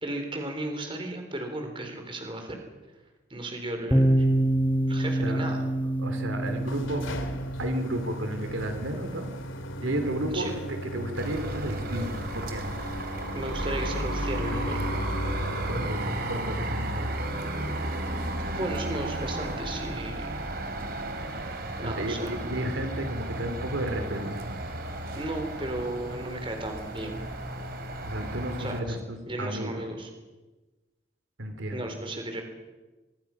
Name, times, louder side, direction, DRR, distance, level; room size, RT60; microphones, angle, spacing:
voice 1, 0.0-2.6 3.3-4.3 4.9-5.6 10.3-10.5 13.3-14.9 18.0-18.2 18.6-20.4 21.8-22.4 25.1-27.2 28.6-29.0 29.3-30.1 31.7-32.4, right 1 dB, 25° right, 4 dB, 3.8 m, -34 dB
sound 1, 3.9-11.6, right 1 dB, 10° left, 1.4 m, -28 dB
voice 2, 6.0-7.1 7.6-9.3 9.8-12.7 15.7-17.1 21.8-24.6 28.0-29.0 29.4-29.8 31.4-31.9, right 1 dB, 75° right, 6 dB, 2.8 m, -32 dB
sound 2, 6.3-16.6, equal, 80° left, 2.7 m, -37 dB
sound 3, 11.2-28.8, right 1 dB, 50° right, 3.0 m, -34 dB
24.0 x 23.0 x 5.9 m, 1.2 s
head